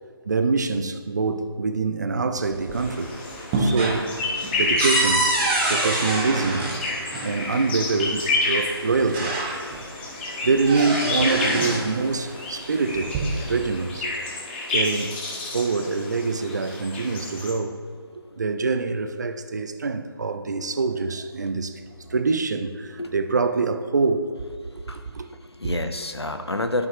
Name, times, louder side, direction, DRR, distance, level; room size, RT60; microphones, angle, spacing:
voice 1, 0.3-3.1 3.6-4.1 4.6-5.4 5.7-6.7 7.2-9.8 10.0-10.1 10.4-13.2 13.5-14.1 14.7-15.2 15.5-17.8 18.1-21.8 22.1-24.3 25.1-25.3, right 4 dB, 45° right, 0.5 m, -25 dB
sound 1, 2.4-3.0 3.3-7.3 8.4-8.5 8.9-9.9 10.2-11.9 12.8-13.6, right 2 dB, 15° right, 0.9 m, -25 dB
sound 2, 2.7-17.5, left 2 dB, 25° left, 1.3 m, -30 dB
voice 2, 24.6-26.9, left 2 dB, 85° left, 0.8 m, -30 dB
12.0 x 5.9 x 2.8 m
figure-of-eight pair, 150°, 13 cm